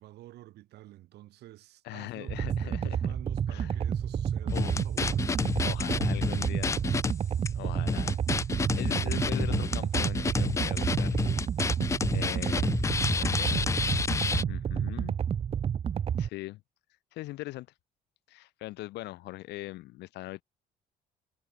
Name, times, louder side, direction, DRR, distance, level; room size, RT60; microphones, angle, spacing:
voice 1, 0.0-5.5 13.5-13.9, right 15 dB, 75° right, 7.0 m, -50 dB
voice 2, 1.8-3.2 3.5-3.8 4.5-4.8 5.6-6.9 7.5-8.2 8.5-11.3 12.1-12.7 13.2-13.7 14.5-15.2 16.2-16.6 17.1-17.7 18.3-20.4, left 18 dB, 85° left, 6.1 m, -41 dB
sound 1, 2.3-16.3, right 8 dB, 35° right, 0.6 m, -30 dB
sound 2, 4.5-7.1 7.5-7.6 7.9-14.4, left 5 dB, 15° left, 0.3 m, -30 dB
cardioid pair, 110°, 17 cm